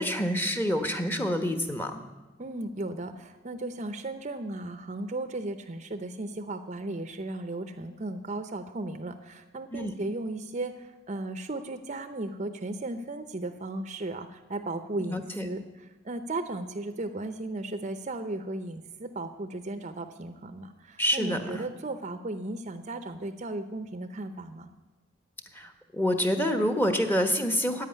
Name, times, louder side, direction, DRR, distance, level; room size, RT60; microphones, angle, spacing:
voice 1, 0.0-2.0 9.7-9.9 15.1-15.5 21.0-21.6 25.5-27.9, equal, 10° left, 7 dB, 1.1 m, -27 dB
voice 2, 2.4-15.6 16.0-24.7, right 2 dB, 35° right, 9 dB, 0.7 m, -35 dB
11.0 x 8.8 x 9.8 m, 1.1 s
head